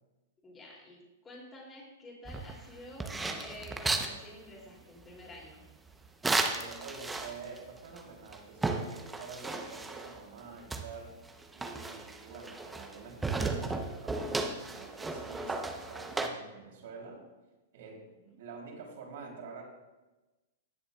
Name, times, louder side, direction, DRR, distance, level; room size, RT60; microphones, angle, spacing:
voice 1, 0.4-3.1 3.4-5.6 18.2-18.4, left 1 dB, 20° left, -2 dB, 3.1 m, -50 dB
sound 1, 2.2-4.1 6.2-7.6 8.0-8.1 8.3-10.2 10.7-13.0 13.2-16.3, right 3 dB, 10° right, 0.9 m, -34 dB
voice 2, 6.4-11.1 11.5-17.2 17.7-18.0 18.4-19.6, right 4 dB, 65° right, -1 dB, 3.4 m, -47 dB
19.0 x 6.9 x 2.4 m, 1.1 s
hypercardioid pair, 115°, 0 cm